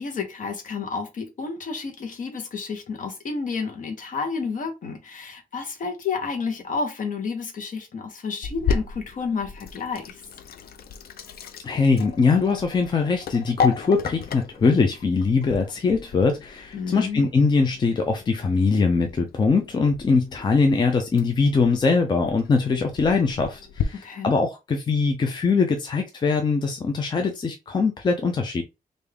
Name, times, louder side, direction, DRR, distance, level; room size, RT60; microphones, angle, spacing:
voice 1, 0.0-10.2 16.7-17.2 24.0-24.3, left 5 dB, 60° left, 1.0 m, -30 dB
Sink (filling or washing), 8.4-23.8, left 6 dB, 80° left, 0.5 m, -34 dB
voice 2, 11.6-28.6, left 4 dB, 30° left, 0.5 m, -22 dB
3.5 x 2.6 x 3.4 m
wide cardioid pair, 160°, 16 cm